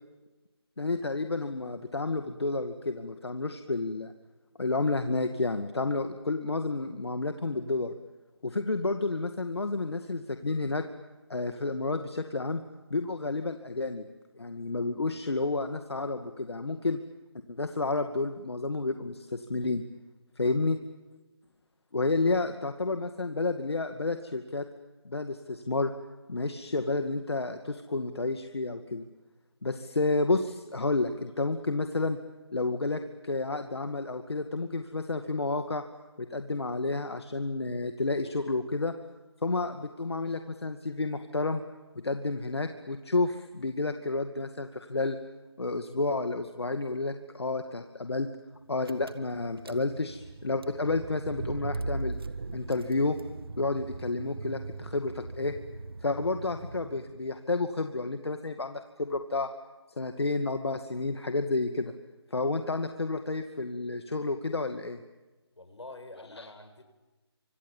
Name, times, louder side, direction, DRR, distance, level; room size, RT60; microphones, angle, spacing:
voice 1, 0.8-4.1 4.6-7.9 8.4-10.8 11.3-12.6 12.9-14.0 14.3-17.0 17.5-19.8 20.4-20.8 21.9-24.7 25.0-25.9 26.3-29.0 29.6-32.2 32.5-35.8 36.2-38.9 39.4-41.6 42.0-45.2 45.6-48.3 48.7-52.2 52.5-53.2 53.6-55.5 56.0-59.5 60.0-61.9 62.3-65.0 66.4-66.5, left 3 dB, 70° left, 7 dB, 2.3 m, -30 dB
Car / Engine, 48.5-48.6 48.8-57.2, right 3 dB, 60° right, 1.9 m, -39 dB
voice 2, 65.6-66.8, left 2 dB, 85° left, 7 dB, 6.7 m, -46 dB
28.5 x 26.5 x 7.4 m, 1.2 s
figure-of-eight pair, 170°, 14 cm